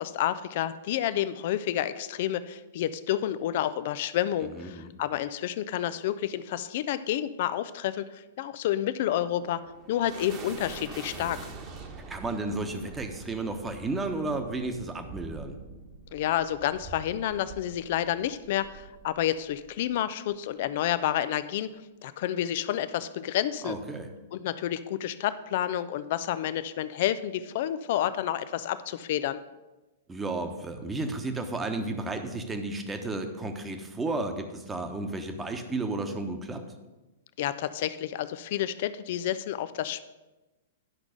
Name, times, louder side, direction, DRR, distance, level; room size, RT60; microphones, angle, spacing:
voice 1, 0.0-9.6 9.9-11.5 16.1-21.7 22.0-23.8 24.3-29.4 37.4-40.0, left 12 dB, 50° left, 14 dB, 0.5 m, -29 dB
voice 2, 4.5-4.9 12.1-15.6 23.6-24.1 30.1-36.6, right 2 dB, 15° right, 5 dB, 1.1 m, -33 dB
sound 1, 9.4-19.9, right 4 dB, 30° right, 1.3 m, -45 dB
10.5 x 5.9 x 5.1 m, 1.1 s
figure-of-eight pair, 105°, 0 cm